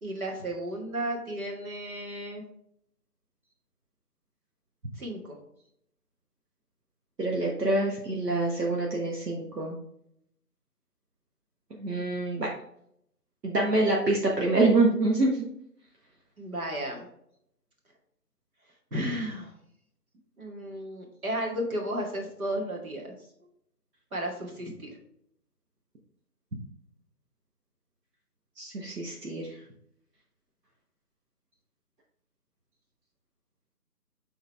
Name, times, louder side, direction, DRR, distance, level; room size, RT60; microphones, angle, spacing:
voice 1, 0.0-2.4 5.0-5.4 16.4-17.1 18.9-19.5 20.4-23.1 24.1-24.9, right 1 dB, 60° right, 0 dB, 2.1 m, -33 dB
voice 2, 7.2-9.8 11.8-12.5 13.4-15.4 28.6-29.5, right 2 dB, 75° right, -2 dB, 1.6 m, -26 dB
7.5 x 3.9 x 3.5 m, 0.72 s
figure-of-eight pair, 180°, 49 cm